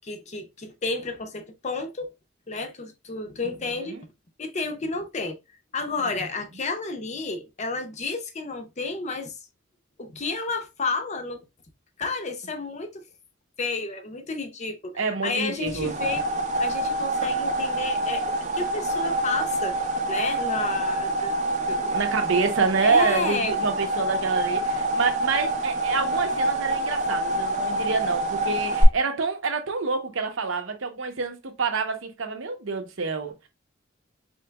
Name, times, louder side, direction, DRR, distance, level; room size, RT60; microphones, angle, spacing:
voice 1, 0.0-2.1 2.5-4.0 4.4-5.4 5.7-9.4 10.0-11.4 12.0-13.0 13.6-16.2 16.6-19.8 20.1-21.3 21.7-21.9 22.8-23.5, left 3 dB, 35° left, 0.6 m, -31 dB
voice 2, 3.4-4.0 14.9-16.0 21.9-33.3, right 4 dB, 70° right, 0.7 m, -27 dB
sound 1, 15.7-28.8, right 1 dB, 35° right, 0.6 m, -26 dB
4.4 x 2.9 x 2.2 m
head